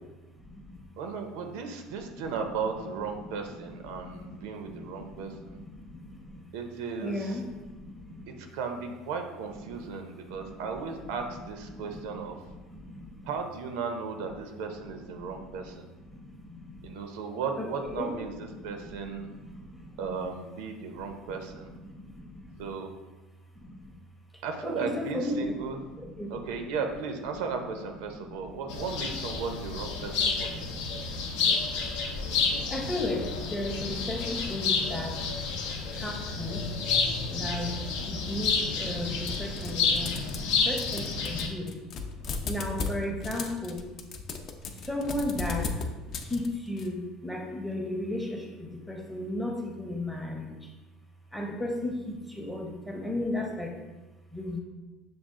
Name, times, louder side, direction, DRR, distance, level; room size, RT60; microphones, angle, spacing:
voice 1, 0.4-0.8 4.0-6.4 7.0-8.3 10.3-10.4 11.7-11.8 12.7-13.3 15.2-15.3 15.6-15.7 16.1-16.9 17.6-18.1 19.3-20.0 21.8-22.6 23.6-23.9 24.6-25.6 26.0-26.3 28.3-28.4 30.8-31.7 32.7-35.2 35.9-36.6 37.3-37.7 38.0-40.1 40.6-41.7 42.4-43.8 44.8-45.7 46.2-50.6 51.3-53.7 54.3-54.6, left 1 dB, 5° left, 1 dB, 0.6 m, -35 dB
voice 2, 1.0-5.6 6.5-7.4 8.3-12.4 13.2-15.9 16.8-19.3 20.0-21.7 22.6-22.9 24.4-25.8 26.3-30.7, right 5 dB, 80° right, 5 dB, 0.5 m, -36 dB
sound 1, 28.7-41.5, left 5 dB, 80° left, 0.7 m, -30 dB
sound 2, 39.3-40.5 40.8-46.9, left 4 dB, 40° left, 0.4 m, -36 dB
6.2 x 2.4 x 3.6 m, 1.2 s
cardioid pair, 145°, 0 cm